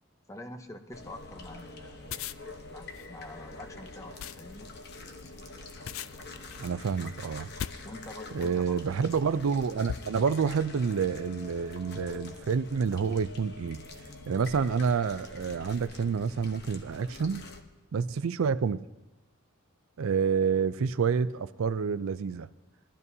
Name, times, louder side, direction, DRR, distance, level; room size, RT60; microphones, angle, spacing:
voice 1, 0.3-2.2 2.7-4.7 7.8-8.9, left 1 dB, 15° left, 0.7 m, -46 dB
sound 1, 0.9-17.6, left 2 dB, 50° left, 1.0 m, -46 dB
sound 2, 2.0-8.6 9.3-9.5 9.9-10.6, left 9 dB, 75° left, 0.4 m, -41 dB
voice 2, 6.6-7.5 8.3-13.8 14.3-17.4 17.9-18.8 20.0-22.5, right 6 dB, 80° right, 0.4 m, -28 dB
21.0 x 12.5 x 2.7 m
head